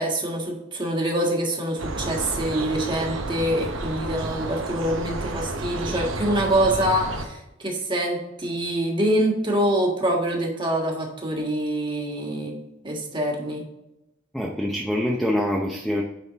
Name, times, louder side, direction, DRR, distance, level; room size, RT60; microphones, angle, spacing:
voice 1, 0.0-12.6 12.8-13.6, right 1 dB, 25° right, 0 dB, 1.5 m, -25 dB
sound 1, 1.8-7.3, right 2 dB, 70° right, 0.9 m, -31 dB
voice 2, 14.3-16.0, left 1 dB, ahead, -2 dB, 0.6 m, -25 dB
9.2 x 3.8 x 4.0 m, 0.90 s
head